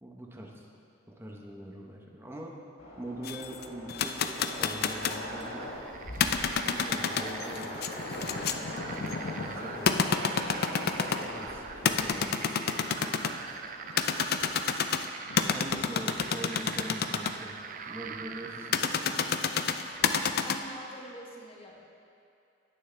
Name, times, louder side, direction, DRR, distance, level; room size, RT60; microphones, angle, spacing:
voice 1, 0.0-0.7 1.1-2.6 3.0-5.7 6.4-10.0 11.2-12.4 15.5-17.6 17.8-19.2, right 1 dB, 15° right, -1 dB, 1.1 m, -43 dB
Train, 2.8-15.1, left 1 dB, 90° left, 1.6 m, -42 dB
sound 1, 3.2-5.3 6.1-11.3 11.8-13.4 13.9-17.3 18.7-20.6, left 6 dB, 55° left, 0.4 m, -29 dB
sound 2, 4.9-20.4, right 6 dB, 45° right, 0.4 m, -44 dB
voice 2, 20.4-21.8, equal, 30° left, -2 dB, 1.5 m, -45 dB
19.0 x 6.4 x 3.4 m, 2.5 s
head